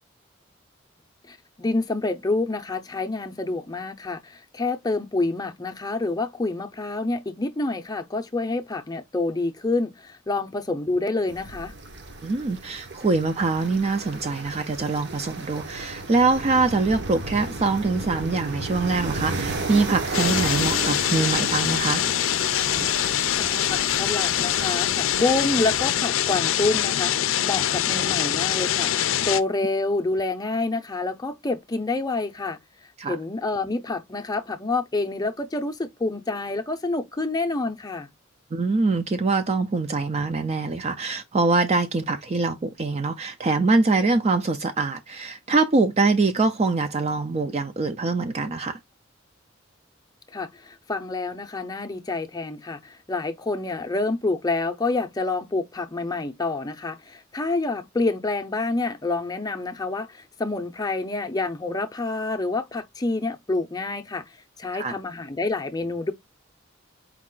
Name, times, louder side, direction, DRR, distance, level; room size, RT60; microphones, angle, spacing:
voice 1, 1.3-11.7 23.4-28.9 29.3-32.6 33.1-38.1 50.3-64.2 64.6-66.1, left 3 dB, 20° left, 0.6 m, -27 dB
sound 1, 11.3-25.9, right 3 dB, 60° right, 1.0 m, -34 dB
voice 2, 12.2-22.0 33.0-33.2 38.5-48.8 64.7-65.0, right 3 dB, 35° right, 0.4 m, -24 dB
sound 2, 20.1-29.4, left 11 dB, 90° left, 0.4 m, -24 dB
4.7 x 2.4 x 3.7 m
head